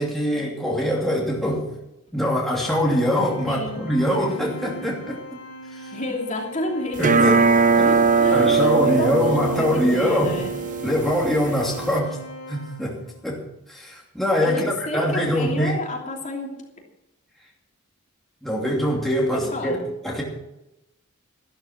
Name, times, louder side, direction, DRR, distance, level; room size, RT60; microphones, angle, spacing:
voice 1, 0.0-1.7 2.1-5.2 5.7-5.9 7.0-7.9 8.3-10.4 10.8-12.2 12.5-13.4 13.7-15.8 18.4-20.2, equal, ahead, -4 dB, 2.8 m, -23 dB
Organ, 2.5-13.2, equal, 80° left, 5.5 m, -40 dB
voice 2, 3.5-3.8 5.9-7.5 7.8-10.5 14.4-16.6 19.3-19.8, left 1 dB, 35° left, -1 dB, 3.0 m, -30 dB
sound 1, 7.0-12.0, right 4 dB, 35° right, 0.7 m, -21 dB
13.5 x 13.0 x 6.0 m, 0.87 s
head